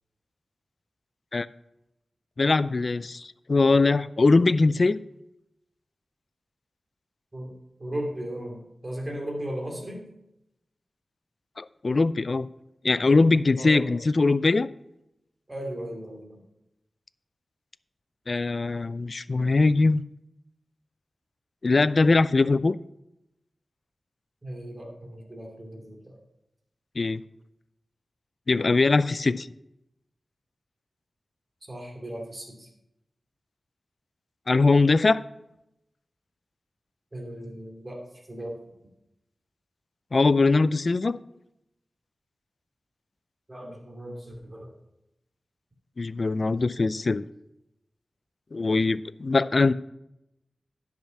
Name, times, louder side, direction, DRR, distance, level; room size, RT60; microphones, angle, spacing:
voice 1, 2.4-5.0 11.6-12.5 12.8-14.7 18.3-20.0 21.6-22.8 27.0-27.2 28.5-29.5 34.5-35.2 40.1-41.2 46.0-47.2 48.5-49.7, left 3 dB, 50° left, 17 dB, 0.4 m, -21 dB
voice 2, 7.8-10.1 13.6-14.0 15.5-16.4 24.4-26.2 31.7-32.7 37.1-38.5 43.5-44.7, right 1 dB, 30° right, 1 dB, 2.8 m, -36 dB
10.5 x 6.1 x 5.8 m, 0.86 s
wide cardioid pair, 65°, 0 cm